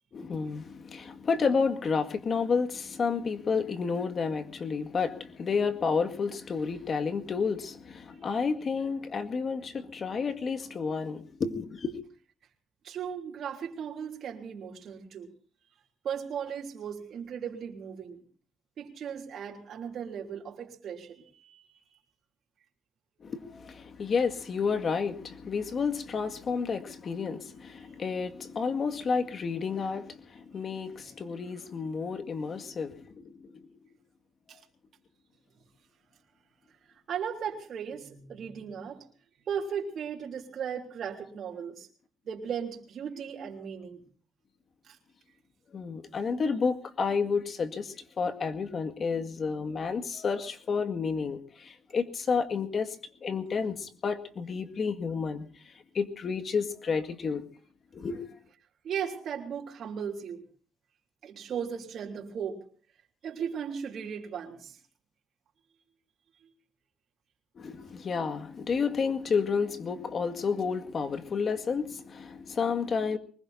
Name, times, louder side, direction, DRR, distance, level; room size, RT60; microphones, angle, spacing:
voice 1, 0.1-12.0 23.2-33.8 45.7-57.4 57.9-58.4 67.6-73.2, left 5 dB, 50° left, 7 dB, 2.0 m, -31 dB
voice 2, 12.8-15.3 16.0-18.2 18.8-21.7 37.1-39.0 39.5-41.9 42.2-44.0 44.9-45.0 58.8-60.4 61.2-62.6 63.2-64.8, right 7 dB, 65° right, 1 dB, 3.4 m, -36 dB
23.5 x 20.5 x 2.7 m, 0.43 s
cardioid pair, 90°, 0 cm